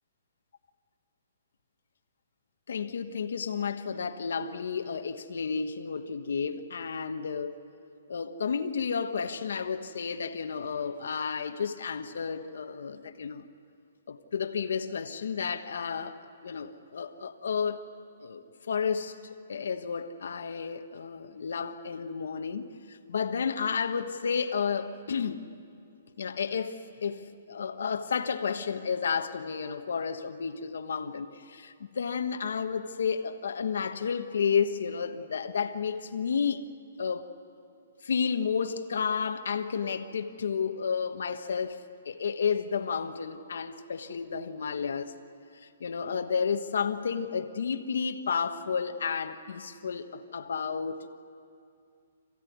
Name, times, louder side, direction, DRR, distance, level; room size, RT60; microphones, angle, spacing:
voice 1, 2.7-7.6 8.1-13.4 14.1-17.8 18.2-19.1 19.5-25.4 26.2-36.7 37.0-37.3 38.0-45.1 45.6-51.1, left 6 dB, 70° left, 1.3 m, -31 dB
26.5 x 15.5 x 9.5 m
hypercardioid pair, 175°, 0 cm